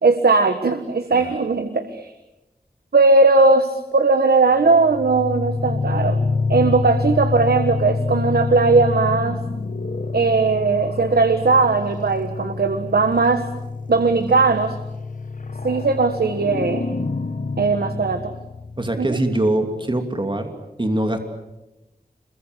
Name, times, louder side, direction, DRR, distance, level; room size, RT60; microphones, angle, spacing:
voice 1, 0.0-2.1 2.9-6.2 6.5-9.4 10.1-13.4 13.9-14.8 15.6-16.8 17.6-18.3 19.0-19.2, right 3 dB, 85° right, 8 dB, 1.5 m, -18 dB
sound 1, 4.7-19.3, left 4 dB, 55° left, 1.6 m, -27 dB
voice 2, 18.8-20.5 20.8-21.2, right 1 dB, 30° right, 5 dB, 2.9 m, -22 dB
27.5 x 22.5 x 8.1 m, 0.96 s
wide cardioid pair, 75°, 16 cm